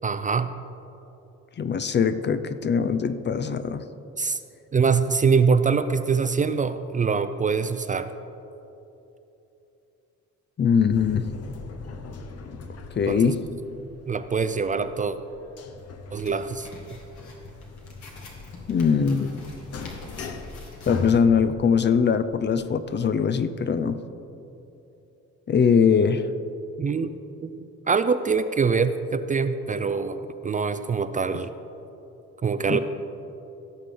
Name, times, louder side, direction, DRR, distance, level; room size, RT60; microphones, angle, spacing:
voice 1, 0.0-0.5 4.2-4.4 4.7-8.1 13.1-13.3 14.1-15.2 16.1-16.7 26.8-27.1 27.4-31.5 32.4-32.8, right 5 dB, 25° right, 10 dB, 0.4 m, -24 dB
voice 2, 1.6-3.8 10.6-11.3 13.0-13.4 18.7-19.4 20.9-24.0 25.5-26.3 32.7-32.8, left 6 dB, 35° left, 11 dB, 0.5 m, -21 dB
sound 1, 10.9-23.3, left 4 dB, 55° left, 0.9 m, -40 dB
sound 2, 16.1-21.2, left 2 dB, 70° left, 2.2 m, -46 dB
16.5 x 6.7 x 3.8 m, 3.0 s
cardioid pair, 90°, 30 cm